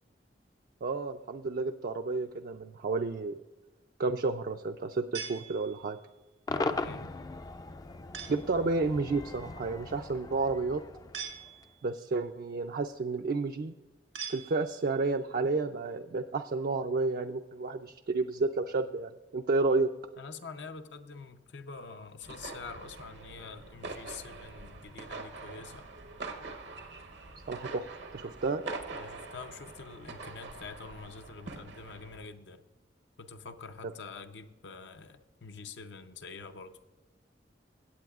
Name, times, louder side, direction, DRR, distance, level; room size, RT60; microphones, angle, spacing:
voice 1, 0.8-3.4 4.0-6.0 8.3-10.8 11.8-13.7 14.3-19.9 27.5-27.9 28.1-28.6, right 3 dB, 55° right, 5 dB, 0.4 m, -31 dB
sound 1, 5.1-6.1 8.1-8.6 11.1-12.0 14.1-15.0, right 7 dB, 90° right, 1.6 m, -43 dB
voice 2, 6.5-7.1 20.2-25.9 28.9-32.6 33.2-36.8, left 4 dB, 75° left, 8 dB, 0.7 m, -46 dB
Cheering / Crowd / Fireworks, 6.5-11.8, left 3 dB, 20° left, 0.3 m, -39 dB
sound 2, 22.2-32.3, right 3 dB, 75° right, 0.9 m, -44 dB
17.0 x 8.5 x 2.4 m, 1.2 s
head